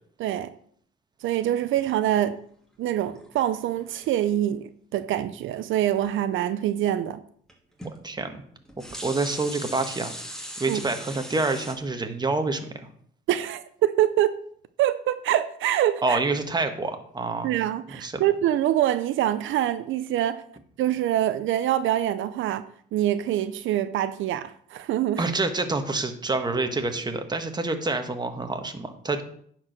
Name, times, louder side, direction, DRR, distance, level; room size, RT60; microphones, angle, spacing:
voice 1, 0.2-0.5 1.2-2.4 2.8-7.2 10.7-10.8 13.3-14.4 14.8-16.2 17.4-20.4 20.8-22.6 22.9-25.3, right 12 dB, 80° right, 0.6 m, -25 dB
sound 1, 3.1-4.2 6.0-6.1 7.5-7.6 7.8-8.0 8.6-11.7, equal, 5° left, 2.5 m, -39 dB
voice 2, 8.0-8.4 9.0-10.1 10.6-12.7 16.0-17.6 18.0-18.2 25.2-29.2, right 3 dB, 20° right, 1.4 m, -27 dB
9.7 x 4.7 x 6.4 m
cardioid pair, 90°, 20 cm